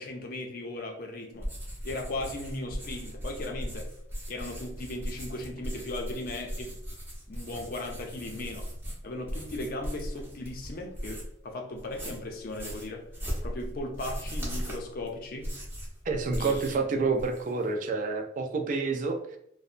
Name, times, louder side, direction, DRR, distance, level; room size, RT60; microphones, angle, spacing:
voice 1, 0.0-1.5 1.8-3.9 4.3-6.7 7.3-8.7 9.0-13.0 13.4-15.5 16.4-16.8, left 2 dB, 50° left, 2 dB, 0.5 m, -37 dB
sound 1, 1.4-11.4 11.8-16.8 17.1-17.7, equal, 15° right, 0.6 m, -38 dB
voice 2, 16.1-19.4, right 4 dB, 45° right, 4 dB, 0.3 m, -28 dB
2.7 x 2.0 x 2.4 m, 0.72 s
head